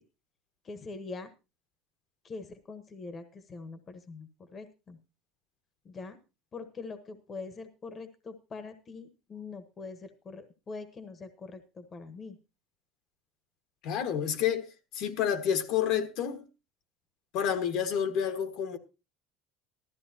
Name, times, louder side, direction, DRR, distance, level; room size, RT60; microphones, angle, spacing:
voice 1, 0.6-1.3 2.2-5.0 5.8-6.2 6.5-12.4, left 4 dB, 25° left, 1.1 m, -43 dB
voice 2, 13.8-16.4 17.3-18.8, left 8 dB, 60° left, 1.5 m, -29 dB
15.0 x 13.0 x 2.8 m
cardioid pair, 145°, 0 cm